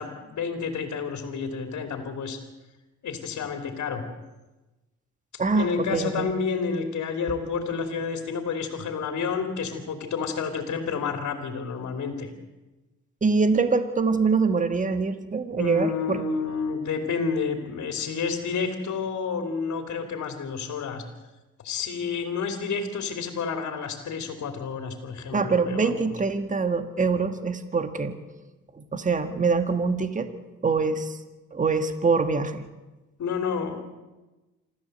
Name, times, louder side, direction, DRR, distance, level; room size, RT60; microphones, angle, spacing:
voice 1, 0.0-2.4 3.0-4.0 5.3-12.3 15.5-21.0 21.6-26.1 33.2-33.8, left 5 dB, 65° left, 5 dB, 3.0 m, -30 dB
voice 2, 5.4-6.3 13.2-16.2 25.3-28.2 28.7-30.3 30.6-31.2 31.5-32.7, right 4 dB, 25° right, 9 dB, 1.6 m, -24 dB
26.5 x 13.5 x 7.9 m, 1.1 s
cardioid pair, 90°, 30 cm